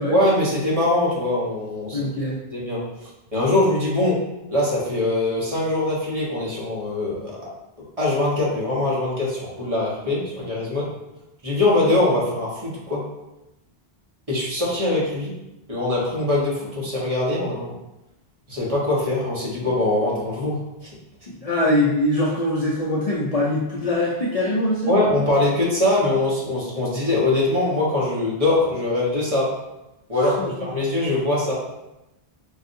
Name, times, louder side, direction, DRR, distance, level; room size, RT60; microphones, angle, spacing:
voice 1, 0.1-2.0 2.5-4.2 4.5-7.4 8.0-10.9 11.4-13.0 14.3-15.3 15.7-17.7 18.5-20.9 24.9-29.5 30.1-31.5, left 2 dB, 35° right, -7 dB, 1.3 m, -22 dB
voice 2, 1.9-2.4 21.3-24.9 30.2-30.7, left 1 dB, 45° left, -5 dB, 0.6 m, -23 dB
5.6 x 2.6 x 2.6 m, 0.95 s
omnidirectional pair, 1.1 m